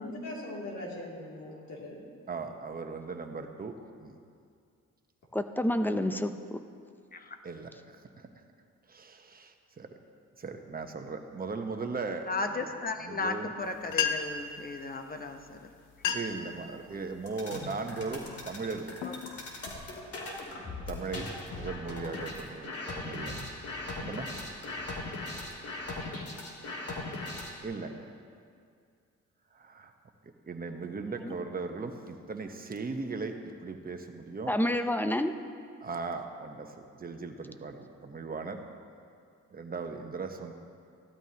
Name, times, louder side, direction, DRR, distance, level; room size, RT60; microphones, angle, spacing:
voice 1, 0.0-2.0, left 1 dB, 70° left, -3 dB, 2.8 m, -40 dB
voice 2, 2.3-3.7 4.0-4.2 7.4-8.3 8.9-9.9 10.4-12.3 13.0-13.5 16.1-18.9 20.9-23.4 24.0-24.3 27.6-28.0 29.5-29.9 30.5-34.5 35.8-38.6 39.5-40.5, right 4 dB, 30° right, 5 dB, 1.1 m, -38 dB
voice 3, 5.3-6.6 31.2-31.3 34.5-35.3, left 1 dB, 5° left, 9 dB, 0.6 m, -28 dB
voice 4, 12.3-15.7 19.0-19.4, left 3 dB, 30° left, 6 dB, 0.9 m, -36 dB
sound 1, 13.6-13.7 13.9-14.5 15.4-15.5 15.9-16.5 17.0-17.3 17.9-18.2 18.7-20.0, left 7 dB, 85° left, 0.8 m, -33 dB
sound 2, 17.3-27.6, left 2 dB, 55° left, 2.3 m, -39 dB
16.5 x 12.5 x 2.9 m, 2.3 s
cardioid pair, 90°, 30 cm